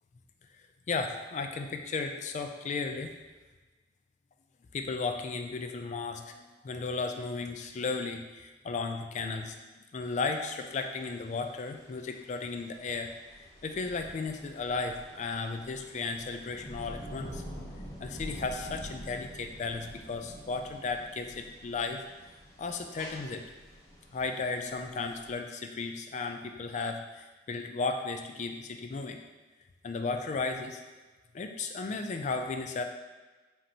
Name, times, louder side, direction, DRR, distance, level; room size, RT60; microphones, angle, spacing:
voice 1, 0.9-3.1 4.7-9.5 9.9-13.1 13.6-17.4 18.0-22.0 22.6-23.4 24.1-29.2 29.8-30.8 31.3-32.8, left 4 dB, 40° left, 5 dB, 0.3 m, -35 dB
sound 1, 10.0-25.3, equal, 15° left, 0.8 m, -47 dB
5.1 x 2.9 x 2.8 m, 1.2 s
head